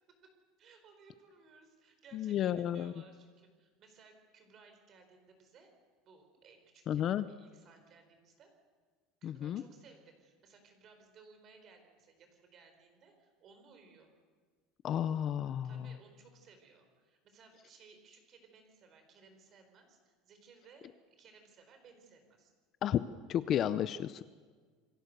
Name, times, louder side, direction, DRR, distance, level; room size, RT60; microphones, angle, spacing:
voice 1, 0.6-5.7 6.0-8.5 9.2-14.1 15.6-20.9 21.2-22.5, right 5 dB, 30° right, 6 dB, 4.6 m, -60 dB
voice 2, 2.1-2.9 6.9-7.2 9.2-9.6 14.8-15.9 22.8-23.0 23.3-24.2, left 10 dB, 30° left, 13 dB, 0.6 m, -32 dB
28.0 x 22.5 x 6.8 m, 1.5 s
cardioid pair, 175°, 0 cm